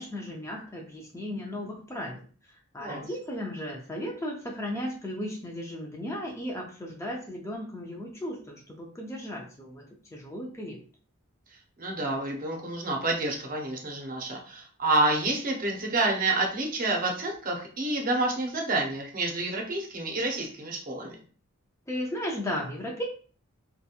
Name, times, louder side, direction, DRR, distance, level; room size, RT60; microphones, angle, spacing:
voice 1, 0.0-2.2 2.7-10.8 21.9-23.0, left 1 dB, 15° left, 0 dB, 0.3 m, -35 dB
voice 2, 11.8-21.2, right 2 dB, 40° right, 1 dB, 0.6 m, -28 dB
2.8 x 2.3 x 2.3 m, 0.41 s
head